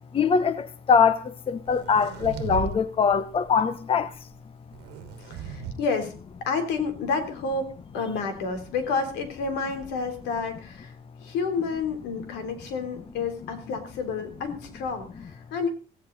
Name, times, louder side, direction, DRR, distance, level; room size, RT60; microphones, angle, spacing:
voice 1, 0.1-4.2, left 6 dB, 35° left, 0.9 m, -23 dB
sound 1, 1.7-2.8 3.1-3.5 4.7-5.7, right 8 dB, 85° right, 1.4 m, -36 dB
voice 2, 5.2-6.1 6.4-10.9 11.2-15.7, left 4 dB, 90° left, 3.5 m, -30 dB
17.0 x 15.5 x 4.0 m
cardioid pair, 110°, 17 cm